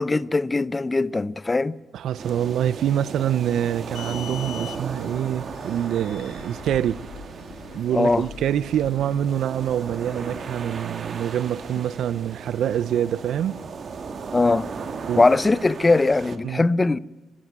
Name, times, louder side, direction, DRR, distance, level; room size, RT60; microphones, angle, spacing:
voice 1, 0.0-1.8 7.9-8.3 14.3-14.7 15.2-17.0, left 3 dB, 20° left, 0.6 m, -20 dB
voice 2, 1.9-7.0 7.7-13.6 15.1-15.2 16.4-16.6, right 10 dB, 75° right, 0.5 m, -25 dB
sound 1, 2.2-16.4, right 5 dB, 50° right, 1.8 m, -36 dB
sound 2, 3.7-10.6, left 8 dB, 80° left, 1.5 m, -43 dB
19.0 x 15.0 x 9.3 m
cardioid pair, 90°, 0 cm